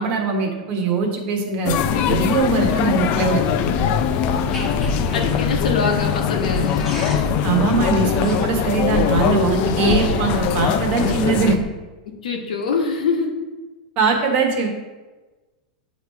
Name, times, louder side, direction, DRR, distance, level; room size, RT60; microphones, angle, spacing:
voice 1, 0.0-3.4 7.4-11.6 14.0-14.7, right 4 dB, 35° right, 2 dB, 1.2 m, -21 dB
sound 1, 1.6-11.6, left 9 dB, 35° left, 0.4 m, -22 dB
sound 2, 1.7-11.6, equal, 5° left, 1.3 m, -28 dB
voice 2, 5.1-6.7 12.2-13.3, left 4 dB, 90° left, 2 dB, 1.2 m, -23 dB
8.8 x 3.2 x 4.5 m, 1.2 s
supercardioid pair, 155°, 4 cm